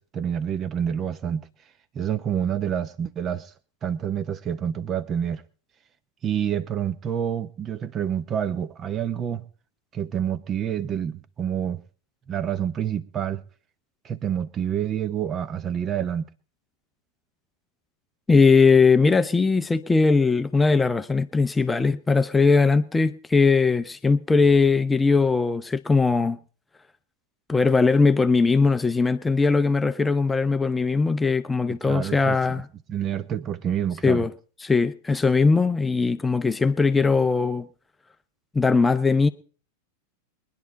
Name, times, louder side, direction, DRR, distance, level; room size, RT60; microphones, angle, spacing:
voice 1, 0.0-1.5 1.9-3.5 3.8-5.4 6.2-9.4 9.9-11.8 12.3-13.4 14.0-16.2 31.7-32.4 32.9-34.3, right 9 dB, 25° right, 0.7 m, -28 dB
voice 2, 18.3-26.4 27.5-32.7 34.0-34.3 34.6-37.7 38.5-39.3, left 4 dB, 10° left, 0.6 m, -20 dB
22.0 x 10.5 x 4.0 m
figure-of-eight pair, 90°, 0 cm